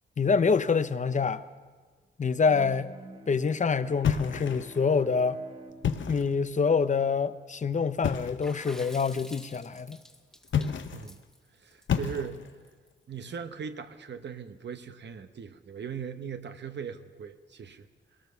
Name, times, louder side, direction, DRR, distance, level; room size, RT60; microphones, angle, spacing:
voice 1, 0.2-1.4 2.2-2.9 3.3-5.4 6.1-10.0, left 5 dB, 40° left, 0.7 m, -26 dB
Bowed string instrument, 2.4-7.5, right 2 dB, 30° right, 1.4 m, -49 dB
sound 1, 4.0-4.8 5.7-6.4 8.0-8.5 10.4-11.1 11.9-12.6, left 7 dB, 80° left, 1.0 m, -30 dB
Water / Splash splatter, 8.4-12.9, left 1 dB, 5° left, 1.4 m, -50 dB
voice 2, 11.5-12.5 13.1-17.9, right 7 dB, 65° right, 1.0 m, -39 dB
23.0 x 18.0 x 6.9 m
wide cardioid pair, 130°, 19 cm